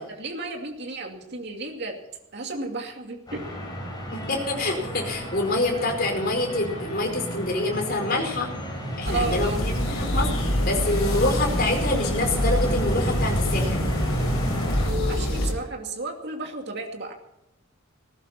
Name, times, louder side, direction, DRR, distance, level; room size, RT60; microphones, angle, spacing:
voice 1, 0.1-2.0 2.3-3.4 9.0-9.6 14.8-17.1, right 2 dB, 55° right, 2 dB, 2.6 m, -33 dB
sound 1, 3.3-14.9, equal, 20° left, 7.5 m, -31 dB
voice 2, 4.1-8.5 9.0-13.8, left 2 dB, 45° left, 2 dB, 4.8 m, -26 dB
sound 2, 9.0-15.5, equal, 75° left, 5.0 m, -26 dB
19.5 x 15.5 x 4.3 m, 0.86 s
head